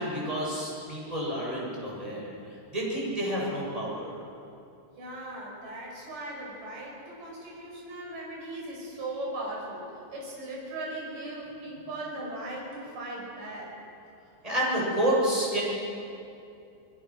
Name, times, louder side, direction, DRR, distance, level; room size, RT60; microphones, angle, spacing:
voice 1, 0.0-2.3 2.7-4.2 14.4-15.6, right 1 dB, 5° right, -5 dB, 6.7 m, -29 dB
voice 2, 5.0-13.7, right 1 dB, 45° right, -3 dB, 6.9 m, -38 dB
29.0 x 20.0 x 6.3 m, 2.6 s
omnidirectional pair, 5.7 m